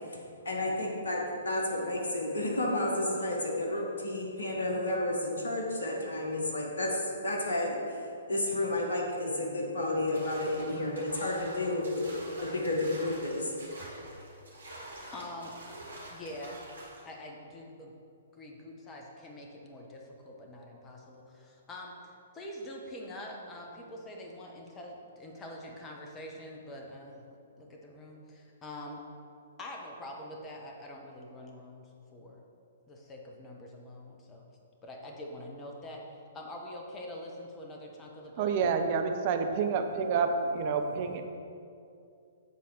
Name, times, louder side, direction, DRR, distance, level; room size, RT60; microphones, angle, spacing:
voice 1, 0.4-7.7 8.3-12.0 12.4-13.6, left 1 dB, 65° left, -2 dB, 1.4 m, -31 dB
sound 1, 10.1-17.0, right 1 dB, 70° right, 2.0 m, -46 dB
voice 2, 15.1-15.5 16.1-16.6 17.0-17.9 18.4-27.2 27.6-29.0 29.6-31.9 32.1-32.4 32.9-34.4 34.8-36.0 36.3-38.5, left 1 dB, 20° left, 0 dB, 1.1 m, -45 dB
voice 3, 38.4-41.2, right 5 dB, 40° right, 6 dB, 0.7 m, -28 dB
8.0 x 4.1 x 6.3 m, 2.5 s
figure-of-eight pair, 120°, 0 cm